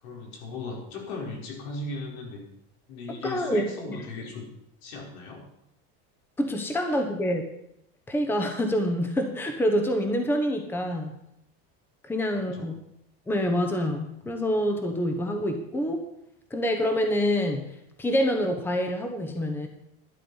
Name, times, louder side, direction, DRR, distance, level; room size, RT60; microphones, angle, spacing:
voice 1, 0.0-2.4 2.9-4.5 4.8-5.5 6.9-7.0 12.5-12.7, left 3 dB, 80° left, 0 dB, 5.0 m, -37 dB
voice 2, 3.1-4.0 6.4-7.4 8.1-11.1 12.0-12.7 13.3-16.1 16.5-19.7, equal, 5° left, 5 dB, 1.0 m, -26 dB
12.0 x 11.5 x 5.6 m, 0.78 s
cardioid pair, 170°, 32 cm